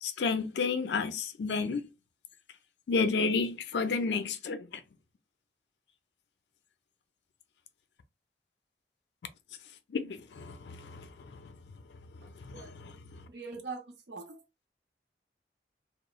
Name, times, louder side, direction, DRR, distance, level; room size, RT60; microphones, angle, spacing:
voice 1, 0.0-1.9 2.9-4.8 9.9-11.3 12.4-12.9, left 4 dB, 75° left, 0.4 m, -31 dB
voice 2, 12.2-12.7 13.3-14.4, right 4 dB, 75° right, 0.7 m, -43 dB
2.9 x 2.0 x 2.3 m
head